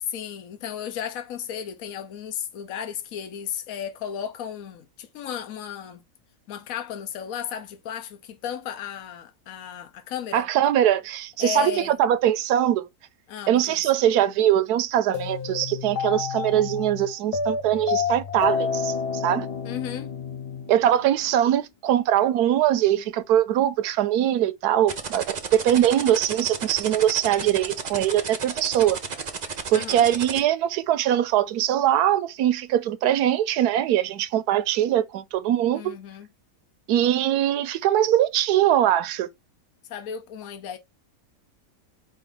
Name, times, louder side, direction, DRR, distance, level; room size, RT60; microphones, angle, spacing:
voice 1, 0.0-6.0 6.5-10.5 11.4-12.0 13.3-13.8 19.6-20.1 29.7-30.1 35.7-36.3 39.9-40.8, left 9 dB, 65° left, 1.2 m, -34 dB
voice 2, 10.3-12.8 13.5-19.5 20.7-29.0 29.7-35.9 36.9-39.3, right 11 dB, 80° right, 1.1 m, -22 dB
sound 1, 15.1-21.3, left 6 dB, 85° left, 1.7 m, -29 dB
sound 2, 24.9-30.4, right 5 dB, 40° right, 0.6 m, -32 dB
5.2 x 2.6 x 3.8 m
omnidirectional pair, 1.6 m